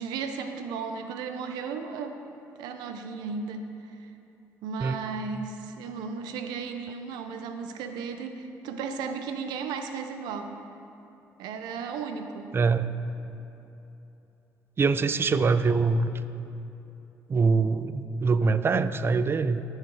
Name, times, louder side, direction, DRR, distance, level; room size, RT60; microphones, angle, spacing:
voice 1, 0.0-2.2 2.6-4.1 4.6-10.6 11.4-12.5, right 5 dB, 85° right, 7 dB, 0.6 m, -35 dB
voice 2, 12.5-12.9 14.8-16.1 17.3-19.7, right 4 dB, 35° right, 13 dB, 0.4 m, -24 dB
14.0 x 4.8 x 4.7 m, 3.0 s
supercardioid pair, 70°, 7 cm